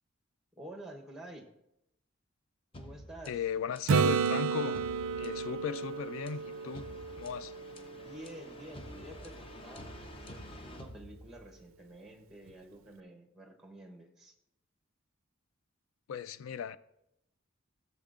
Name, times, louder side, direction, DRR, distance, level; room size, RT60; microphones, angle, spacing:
voice 1, 0.6-1.5 2.7-3.4 7.5-7.6 7.9-9.9 10.2-14.3, right 1 dB, ahead, 1.0 m, -50 dB
sound 1, 2.7-11.7, left 1 dB, 25° left, 0.6 m, -50 dB
voice 2, 3.3-4.8 5.1-6.9 7.2-7.5 16.1-16.8, left 7 dB, 85° left, 0.3 m, -37 dB
Acoustic guitar / Strum, 3.9-7.6 12.5-12.6, right 6 dB, 80° right, 0.3 m, -31 dB
15.0 x 6.9 x 2.5 m
head